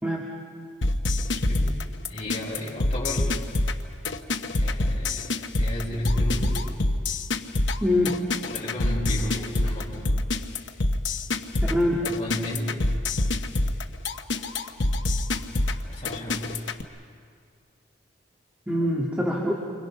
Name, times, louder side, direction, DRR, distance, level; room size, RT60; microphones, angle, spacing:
sound 1, 0.8-16.8, left 2 dB, 75° left, 1.1 m, -26 dB
voice 1, 1.3-1.8 2.1-3.4 4.5-6.6 8.4-10.1 11.6-12.9 15.7-16.6, left 1 dB, 35° left, -6 dB, 5.6 m, -34 dB
voice 2, 7.8-8.2 11.7-12.0 18.7-19.5, left 1 dB, 5° right, -3 dB, 2.1 m, -23 dB
29.5 x 25.0 x 5.9 m, 2.2 s
head